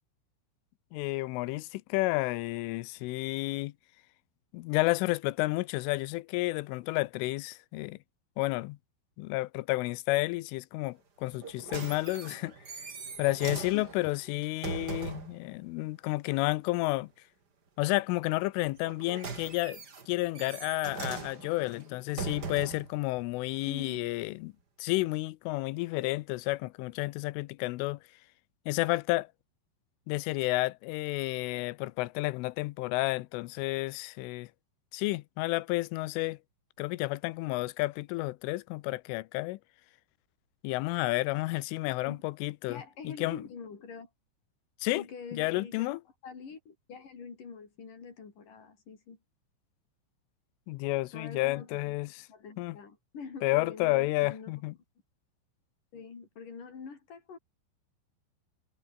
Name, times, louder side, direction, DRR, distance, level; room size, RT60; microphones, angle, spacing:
voice 1, 0.9-3.7 4.5-8.0 8.4-8.8 9.2-12.9 13.2-17.1 17.8-19.8 20.1-24.5 24.8-28.0 28.7-29.3 30.1-34.5 34.9-36.4 36.8-39.6 40.6-43.4 44.8-45.0 45.3-46.0 50.7-52.3 52.6-52.8 53.4-54.7, left 21 dB, 85° left, 3.3 m, -31 dB
sound 1, 11.3-15.4 18.7-22.9 23.7-23.8, right 5 dB, 35° right, 1.7 m, -40 dB
voice 2, 23.7-24.1 42.1-42.2 42.7-44.1 44.9-46.0 46.2-49.2 51.1-51.9 52.3-54.5 55.9-57.4, left 5 dB, 45° left, 6.0 m, -45 dB
omnidirectional pair, 5.6 m